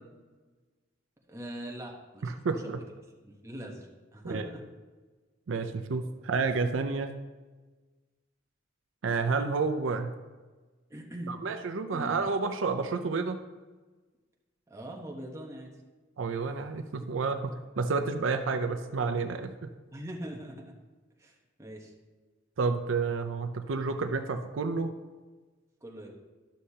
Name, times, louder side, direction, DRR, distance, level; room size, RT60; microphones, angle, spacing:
voice 1, 1.3-2.8 3.2-4.6 10.9-11.4 11.9-12.1 14.7-15.7 19.9-20.8 21.2-21.9 25.8-26.1, equal, 15° right, -1 dB, 1.0 m, -42 dB
voice 2, 2.2-2.8 4.2-4.5 5.5-7.1 9.0-10.2 11.3-13.4 16.2-19.7 22.6-24.9, right 4 dB, 75° right, 7 dB, 0.5 m, -30 dB
11.5 x 6.4 x 2.8 m, 1.3 s
head